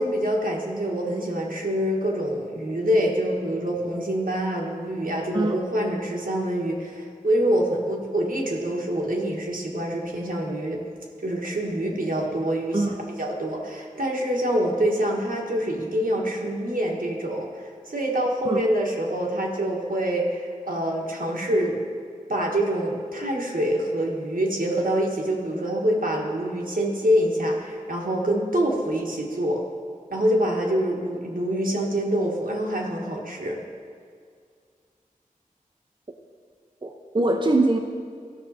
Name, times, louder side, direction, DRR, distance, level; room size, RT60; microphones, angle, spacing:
voice 1, 0.0-10.8 11.2-12.8 13.2-21.8 22.3-29.6 30.1-33.6, equal, 75° right, -1 dB, 1.5 m, -25 dB
voice 2, 36.8-37.8, right 2 dB, 35° right, 3 dB, 0.6 m, -22 dB
14.5 x 6.0 x 4.2 m, 2.1 s
wide cardioid pair, 50°, 14 cm